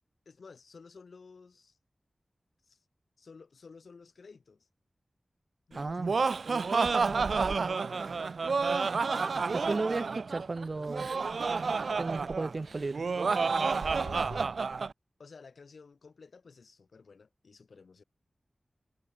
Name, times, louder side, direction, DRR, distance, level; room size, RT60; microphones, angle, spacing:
voice 1, 0.2-1.8 2.7-2.8 3.2-4.7 5.7-6.4 6.8-8.2 8.8-9.1 12.4-12.7 13.6-14.5 15.2-18.0, left 4 dB, 90° left, 4.9 m, -53 dB
voice 2, 5.7-6.1 9.5-11.1 12.0-13.0, right 3 dB, 50° right, 1.2 m, -34 dB
Laughter, 5.8-14.9, right 4 dB, 85° right, 1.1 m, -30 dB
wide cardioid pair, 90°, 0 cm